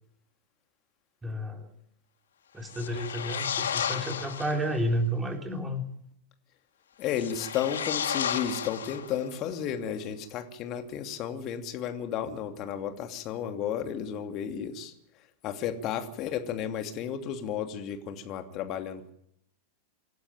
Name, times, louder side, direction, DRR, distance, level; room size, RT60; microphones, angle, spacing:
voice 1, 1.2-1.7 2.5-5.8, equal, 10° right, 4 dB, 4.1 m, -31 dB
sound 1, 2.6-4.7 7.1-9.4, left 8 dB, 65° left, 1.9 m, -33 dB
voice 2, 7.0-14.9 15.4-19.1, left 8 dB, 35° left, 6 dB, 2.8 m, -33 dB
26.5 x 12.0 x 9.2 m, 0.72 s
figure-of-eight pair, 90°, 0 cm